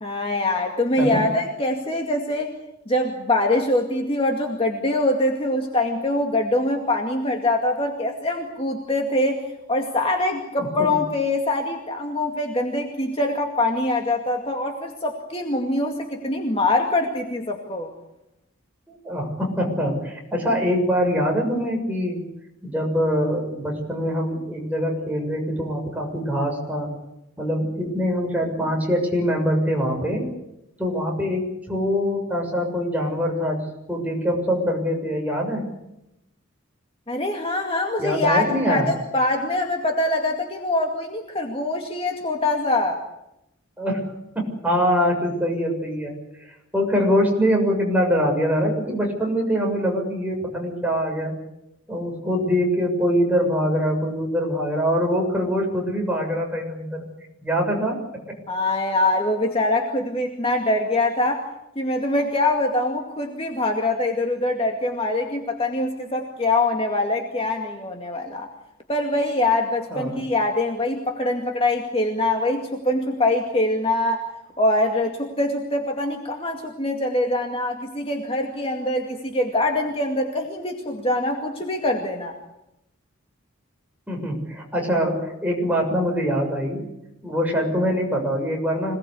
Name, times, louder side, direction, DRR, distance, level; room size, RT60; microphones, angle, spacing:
voice 1, 0.0-2.5 2.9-17.9 37.1-43.0 58.5-61.4 61.8-68.5 68.9-74.3 74.6-82.4, left 2 dB, 25° left, 2 dB, 2.2 m, -24 dB
voice 2, 10.6-11.0 18.9-22.2 22.6-26.9 27.4-30.3 30.8-35.7 38.0-38.9 43.8-51.3 51.9-57.1 57.4-58.0 58.3-58.4 69.9-70.3 84.1-86.8 87.2-88.9, equal, 10° right, 0 dB, 6.8 m, -24 dB
26.5 x 19.5 x 8.4 m, 0.87 s
head